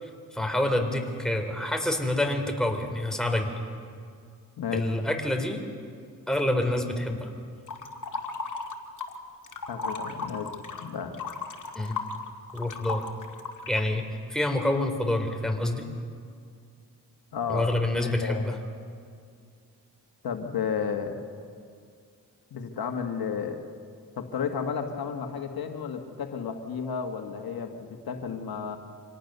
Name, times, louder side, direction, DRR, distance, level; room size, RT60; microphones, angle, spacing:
voice 1, 0.0-3.5 4.7-5.6 6.3-7.3 11.7-12.0 12.5-13.1 13.7-14.0 14.3-15.8 17.5-18.6, left 1 dB, ahead, 3 dB, 3.5 m, -27 dB
voice 2, 4.6-4.9 9.7-11.2 17.3-17.7 18.0-18.5 20.2-21.2 22.5-23.6 24.2-28.8, left 6 dB, 80° left, 5 dB, 1.7 m, -32 dB
sound 1, 7.7-9.2 9.4-13.9, left 4 dB, 55° left, 2.3 m, -35 dB
26.0 x 17.5 x 6.8 m, 2.2 s
cardioid pair, 55°, 36 cm